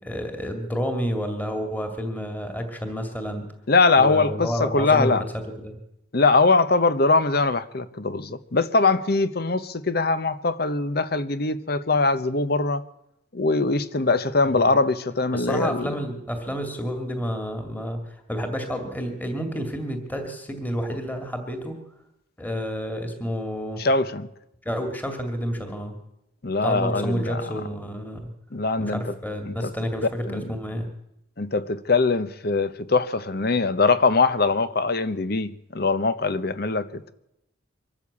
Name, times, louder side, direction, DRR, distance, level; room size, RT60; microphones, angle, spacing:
voice 1, 0.0-3.5 4.0-5.1 5.6-5.8 14.5-14.7 15.3-21.8 22.4-23.8 24.6-26.0 26.6-28.2 28.8-30.9, equal, 10° left, 2.2 m, -30 dB
voice 2, 3.7-5.2 6.1-12.8 13.3-15.9 23.8-24.3 26.4-27.4 28.5-29.1 29.5-29.7 30.2-30.5 31.4-37.1, left 3 dB, 50° left, 0.9 m, -22 dB
23.5 x 13.5 x 8.5 m
head